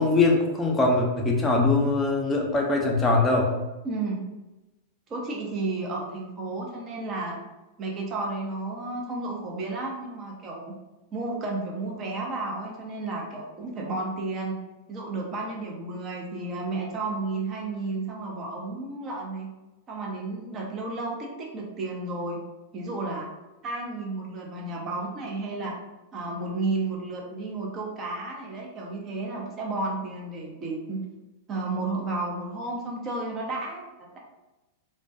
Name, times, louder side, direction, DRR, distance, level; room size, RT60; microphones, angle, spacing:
voice 1, 0.0-3.5, left 3 dB, 15° left, -1 dB, 0.5 m, -22 dB
voice 2, 3.8-4.3 5.1-7.4 7.8-10.7 11.1-14.6 14.9-19.5 19.9-22.4 22.7-23.3 23.6-25.8 26.1-31.0 31.5-34.2, right 2 dB, 30° right, -1 dB, 0.6 m, -32 dB
2.2 x 2.2 x 2.6 m, 1.0 s
hypercardioid pair, 100°, 0 cm